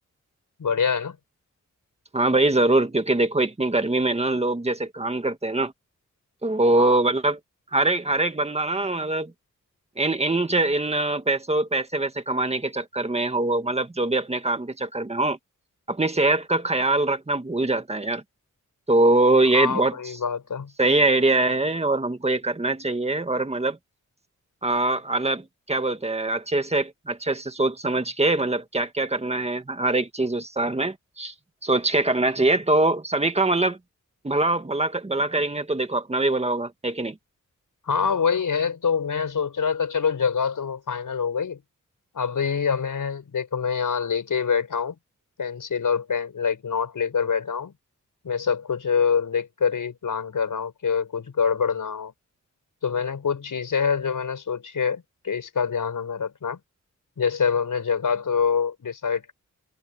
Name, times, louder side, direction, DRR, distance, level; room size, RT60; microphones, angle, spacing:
voice 1, 0.6-1.2 6.8-7.0 19.5-20.7 37.9-41.6 42.1-45.0 45.4-47.7 48.2-52.1 52.8-56.6 57.2-59.3, left 6 dB, 80° left, 5.4 m, -25 dB
voice 2, 2.1-5.7 6.4-7.4 7.7-9.3 10.0-15.4 15.9-18.2 18.9-20.0 20.8-23.8 24.6-31.3 31.6-33.8 34.2-37.2, right 2 dB, 20° right, 1.7 m, -23 dB
wide cardioid pair, 135°, 32 cm